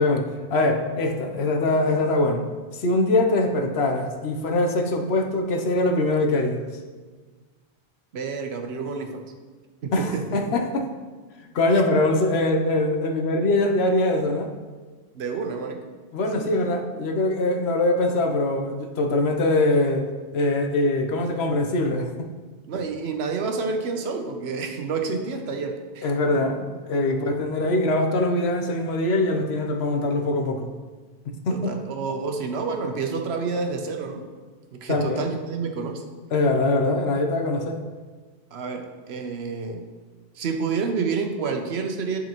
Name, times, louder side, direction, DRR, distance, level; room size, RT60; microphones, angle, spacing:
voice 1, 0.0-2.4 2.7-6.6 9.9-10.9 11.5-14.5 16.1-20.1 20.3-22.1 26.0-26.6 26.9-30.7 31.5-31.8 34.9-35.2 36.3-37.8, left 2 dB, 80° left, 3 dB, 1.0 m, -22 dB
voice 2, 8.1-9.2 9.8-10.2 11.7-11.8 15.1-15.8 16.4-16.8 22.7-26.1 26.9-27.0 31.5-34.2 34.7-36.0 38.5-39.8 40.4-42.2, right 4 dB, 75° right, 4 dB, 1.0 m, -29 dB
10.5 x 4.0 x 3.0 m, 1.4 s
omnidirectional pair, 1.1 m